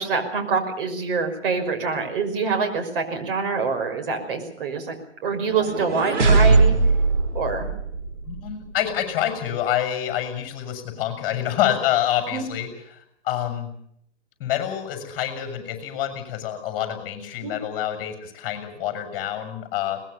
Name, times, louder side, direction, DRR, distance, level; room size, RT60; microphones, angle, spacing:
voice 1, 0.0-4.9 5.2-6.8 7.3-7.7 12.3-12.4 17.4-17.5, right 4 dB, 50° right, 5 dB, 5.8 m, -25 dB
sound 1, 5.3-8.5, right 3 dB, 90° right, 5.2 m, -20 dB
voice 2, 8.3-13.0 13.2-13.7 14.4-20.0, left 11 dB, 30° left, 7 dB, 7.0 m, -27 dB
22.5 x 20.0 x 7.0 m, 0.70 s
hypercardioid pair, 145°, 35 cm